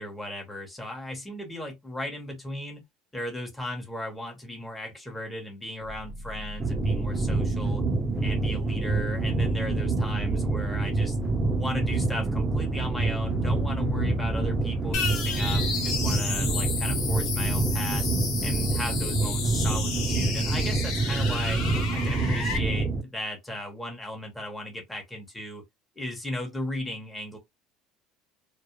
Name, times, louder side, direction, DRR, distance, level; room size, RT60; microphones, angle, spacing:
voice 1, 0.0-2.8 3.1-7.8 8.2-11.2 11.6-18.0 18.4-21.6 21.9-25.6 26.0-27.4, left 1 dB, 10° left, 0.9 m, -36 dB
sound 1, 5.8-19.6, left 4 dB, 40° left, 0.5 m, -41 dB
sound 2, 6.6-23.0, right 3 dB, 20° right, 0.5 m, -27 dB
sound 3, 14.9-22.6, left 6 dB, 70° left, 0.8 m, -32 dB
2.3 x 2.1 x 2.9 m
supercardioid pair, 100°, 0 cm